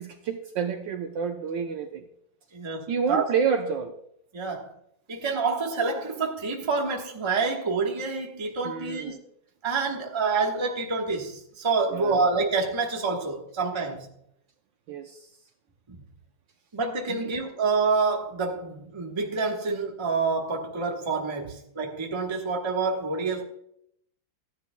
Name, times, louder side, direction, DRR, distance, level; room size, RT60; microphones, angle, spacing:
voice 1, 0.0-2.0 2.9-3.9 8.6-9.2 11.9-12.3 14.9-15.3 17.1-17.3, right 6 dB, 70° right, 1.2 m, -29 dB
voice 2, 2.5-3.3 4.3-4.7 5.1-9.1 9.6-14.0 15.9-16.0 16.7-23.4, right 4 dB, 20° right, 0.8 m, -27 dB
15.0 x 10.5 x 2.2 m
omnidirectional pair, 2.4 m